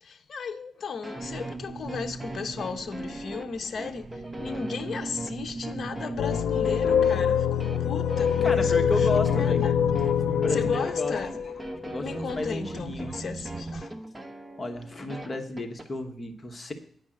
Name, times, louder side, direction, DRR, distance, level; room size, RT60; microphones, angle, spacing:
voice 1, 0.0-9.8 10.5-11.5 12.0-13.9, left 5 dB, 50° left, 0.8 m, -36 dB
sound 1, 1.0-15.9, right 1 dB, 15° right, 0.9 m, -40 dB
sound 2, 1.2-13.9, right 3 dB, 30° right, 0.4 m, -40 dB
sound 3, 6.2-12.3, left 8 dB, 85° left, 0.4 m, -24 dB
voice 2, 8.4-9.6 10.3-11.2 11.8-13.1 14.6-16.7, left 2 dB, 30° left, 1.2 m, -32 dB
9.9 x 5.3 x 7.5 m
cardioid pair, 120°, 0 cm